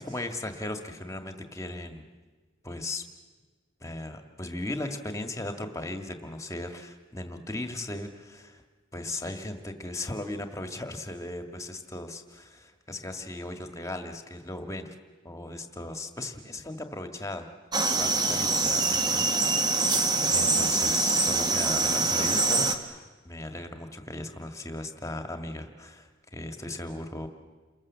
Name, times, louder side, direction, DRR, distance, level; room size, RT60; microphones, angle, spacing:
voice 1, 0.0-2.0 2.6-3.0 3.8-8.6 8.9-15.0 15.2-17.5 17.9-19.8 20.3-27.3, left 2 dB, 15° left, 6 dB, 1.9 m, -37 dB
sound 1, 17.7-22.7, right 3 dB, 20° right, 1.6 m, -24 dB
29.5 x 21.5 x 7.4 m, 1.3 s
head